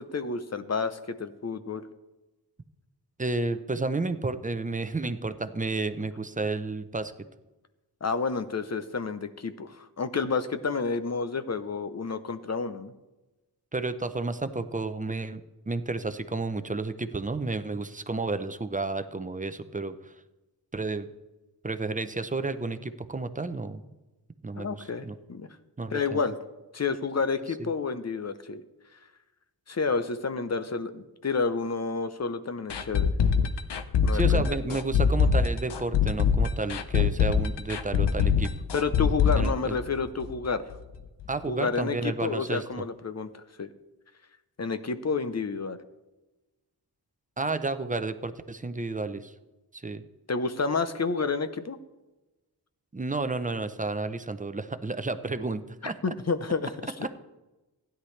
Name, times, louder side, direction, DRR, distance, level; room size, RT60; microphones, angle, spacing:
voice 1, 0.0-1.8 8.0-12.9 24.6-25.5 25.9-26.3 26.7-28.6 29.7-33.1 34.0-34.8 38.7-40.6 41.5-43.7 44.6-45.8 50.3-51.8 55.8-57.1, left 4 dB, 40° left, 11 dB, 0.7 m, -30 dB
voice 2, 3.2-7.1 13.7-15.4 15.7-20.1 20.7-21.1 21.6-23.8 24.4-25.1 25.8-26.2 27.4-27.7 34.1-38.5 39.3-39.8 41.3-42.6 47.4-49.3 49.7-50.0 52.9-56.0, right 3 dB, 20° right, 10 dB, 0.6 m, -31 dB
sound 1, 32.7-40.4 40.7-40.8 41.2-41.3, left 6 dB, 80° left, 0.8 m, -24 dB
16.0 x 10.0 x 3.2 m, 1.1 s
wide cardioid pair, 120°, 41 cm